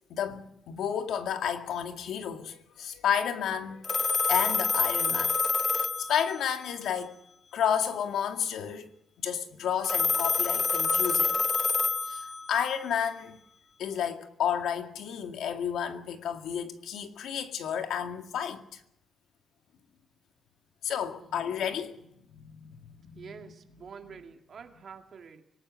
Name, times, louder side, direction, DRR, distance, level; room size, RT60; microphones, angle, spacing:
voice 1, 0.1-3.8 4.3-5.4 5.7-7.2 7.5-8.9 9.2-11.4 12.0-13.4 13.8-18.8 20.8-23.5 24.1-24.2, left 8 dB, 75° left, 2.1 m, -31 dB
Telephone, 3.8-6.7 9.8-12.7, left 4 dB, 25° left, 1.3 m, -27 dB
voice 2, 23.2-25.4, right 6 dB, 40° right, 2.3 m, -47 dB
26.0 x 19.0 x 6.4 m
cardioid pair, 180°, 0 cm